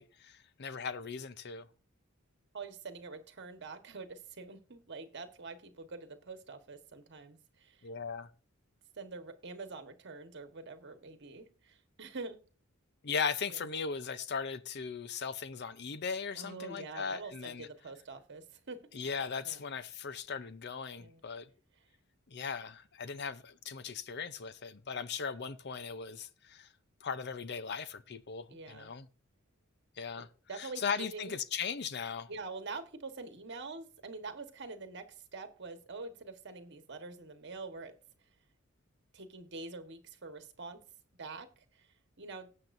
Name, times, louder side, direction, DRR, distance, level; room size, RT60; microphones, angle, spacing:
voice 1, 0.0-1.7 7.8-8.3 13.0-17.7 18.9-21.5 22.3-26.7 27.0-29.1 30.0-30.3 30.6-32.3, left 6 dB, 55° left, 0.7 m, -38 dB
voice 2, 2.5-7.9 9.0-12.4 13.5-13.6 16.3-18.9 19.4-19.6 21.0-21.2 28.5-28.9 30.1-31.4 32.3-37.9 39.1-40.8 41.2-41.9 42.2-42.5, right 3 dB, 55° right, 1.4 m, -45 dB
18.0 x 7.5 x 2.6 m
head